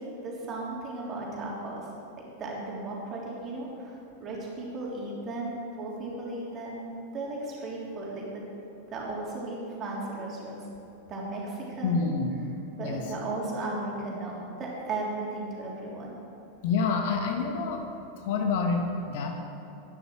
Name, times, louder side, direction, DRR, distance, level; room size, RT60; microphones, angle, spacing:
voice 1, 0.0-1.9 2.2-6.8 7.1-8.4 8.9-10.6 11.1-12.1 12.8-16.2, right 2 dB, 30° right, -3 dB, 3.4 m, -35 dB
voice 2, 11.8-12.3 12.8-13.1 16.6-17.8 18.2-19.3, left 4 dB, 50° left, 3 dB, 1.3 m, -27 dB
11.5 x 10.5 x 6.3 m, 2.9 s
figure-of-eight pair, 90°, 0 cm